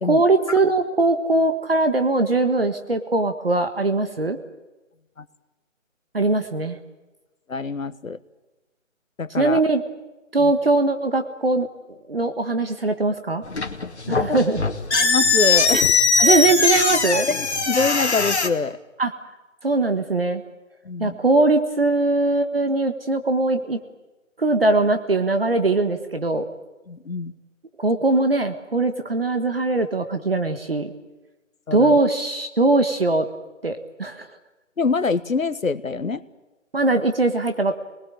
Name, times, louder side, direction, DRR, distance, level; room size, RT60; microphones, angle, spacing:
voice 1, 0.1-4.4 6.1-6.8 9.4-9.8 10.3-11.7 12.1-13.4 14.1-14.6 16.2-17.3 19.0-19.1 19.6-20.4 21.0-23.8 24.4-26.4 27.8-30.9 31.7-33.2 33.6-34.3 36.7-37.8, right 2 dB, 45° right, 8 dB, 1.6 m, -21 dB
voice 2, 7.5-8.2 9.2-9.6 10.4-10.5 14.9-16.4 17.3-18.8 20.8-21.2 26.9-27.3 31.7-32.0 34.8-36.2, left 4 dB, 90° left, 14 dB, 1.4 m, -25 dB
sound 1, 13.4-18.5, left 4 dB, 55° left, 2.3 m, -20 dB
26.5 x 20.0 x 9.0 m, 1.1 s
figure-of-eight pair, 175°, 39 cm